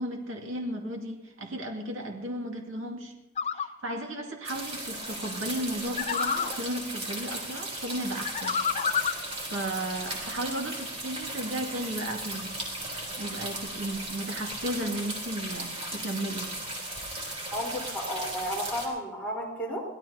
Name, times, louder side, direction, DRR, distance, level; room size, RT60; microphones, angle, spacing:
voice 1, 0.0-3.1 3.5-8.6 9.4-12.6 13.2-16.5, right 1 dB, 75° right, 2 dB, 2.4 m, -34 dB
sound 1, 3.4-3.7 6.0-6.6 8.2-9.2, left 7 dB, 35° left, 0.5 m, -28 dB
sound 2, 4.4-18.9, right 1 dB, 30° right, 3.6 m, -36 dB
voice 2, 17.5-19.8, equal, 10° left, -5 dB, 4.1 m, -33 dB
23.5 x 17.0 x 2.9 m, 1.1 s
head